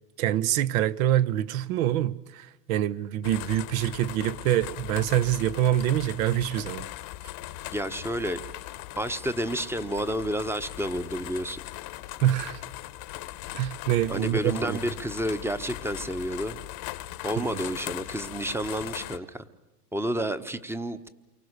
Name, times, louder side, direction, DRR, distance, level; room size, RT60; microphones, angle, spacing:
voice 1, 0.2-6.9 12.2-12.6 13.5-14.8 17.4-17.6, right 12 dB, 55° right, 1.1 m, -25 dB
sound 1, 3.2-19.2, left 17 dB, 45° left, 1.2 m, -39 dB
voice 2, 7.7-8.4 9.0-11.6 14.1-16.6 17.2-19.5 19.9-21.1, right 1 dB, 5° right, 1.1 m, -30 dB
28.5 x 24.0 x 6.7 m
hypercardioid pair, 105°, 48 cm